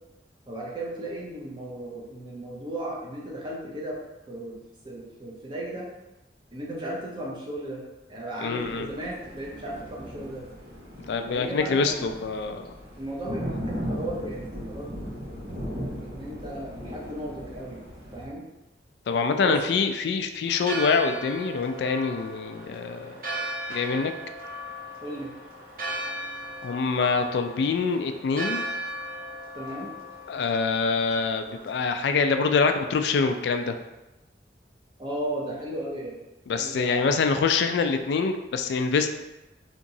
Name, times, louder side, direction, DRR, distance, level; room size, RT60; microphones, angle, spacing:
voice 1, 0.5-4.0 4.3-4.6 4.8-5.9 6.5-10.4 11.3-12.1 13.0-15.0 15.6-17.8 18.1-18.4 19.4-19.8 25.0-25.3 29.5-29.9 35.0-36.2 36.6-37.2, right 1 dB, 25° right, -3 dB, 0.6 m, -35 dB
voice 2, 8.4-8.9 11.1-12.7 19.1-23.2 23.7-24.1 26.6-28.6 30.3-33.8 36.5-39.2, left 5 dB, 70° left, 7 dB, 0.3 m, -25 dB
Thunder, 8.6-18.2, equal, 80° right, 1.3 m, -37 dB
Church bell, 20.5-32.0, right 1 dB, 55° right, 0.9 m, -37 dB
3.6 x 2.9 x 2.7 m, 1.0 s
head